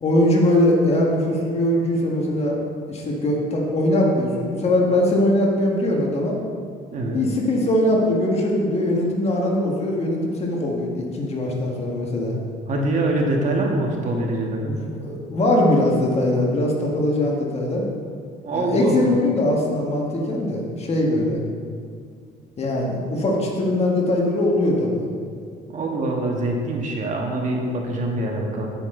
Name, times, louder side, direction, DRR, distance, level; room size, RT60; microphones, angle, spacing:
voice 1, 0.0-2.6 2.9-6.4 7.1-12.4 14.6-17.8 18.5-21.4 22.6-25.0, left 1 dB, 40° left, -1 dB, 1.8 m, -21 dB
voice 2, 12.7-14.7 18.4-19.0 25.7-28.7, right 2 dB, 45° right, 0 dB, 1.7 m, -24 dB
9.0 x 8.7 x 3.9 m, 2.1 s
cardioid pair, 110°, 17 cm